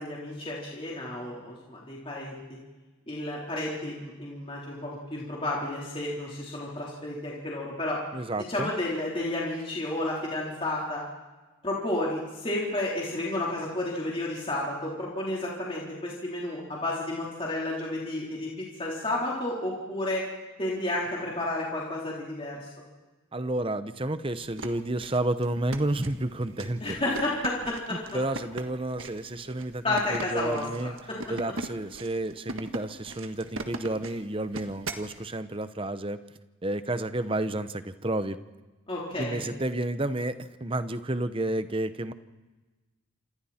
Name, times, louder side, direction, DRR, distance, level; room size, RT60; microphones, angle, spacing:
voice 1, 0.0-2.4 3.1-8.0 8.5-11.0 11.6-20.3 20.6-22.6 26.8-28.0 29.8-31.2 38.9-39.4, left 1 dB, 25° left, -4 dB, 3.9 m, -31 dB
voice 2, 8.1-8.7 23.3-27.0 27.9-30.9 31.3-36.2 36.6-38.4 39.2-42.1, right 1 dB, 25° right, 12 dB, 0.8 m, -31 dB
sound 1, 24.4-35.1, right 2 dB, 70° right, 1.6 m, -39 dB
28.0 x 27.0 x 4.4 m, 1.2 s
head